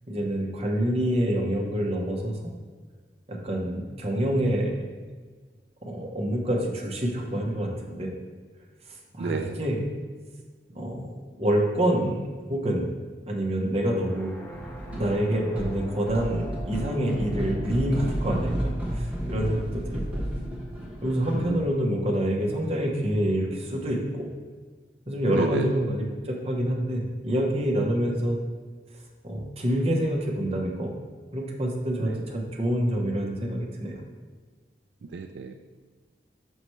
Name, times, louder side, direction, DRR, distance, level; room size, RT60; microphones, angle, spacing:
voice 1, 0.1-2.5 3.3-4.9 5.8-8.1 8.9-9.8 10.7-12.9 13.3-14.3 14.8-20.2 21.0-24.3 25.1-28.4 29.2-30.9 31.3-34.0, right 1 dB, 35° right, 0 dB, 0.9 m, -27 dB
voice 2, 9.2-9.6 21.3-21.6 25.3-25.7 32.0-32.2 35.0-35.5, right 5 dB, 75° right, 5 dB, 0.3 m, -31 dB
sound 1, 13.9-21.7, equal, 10° left, 0.6 m, -45 dB
sound 2, 14.5-15.2 15.6-21.6, right 1 dB, 10° right, 1.1 m, -32 dB
5.9 x 5.5 x 3.1 m, 1.4 s
head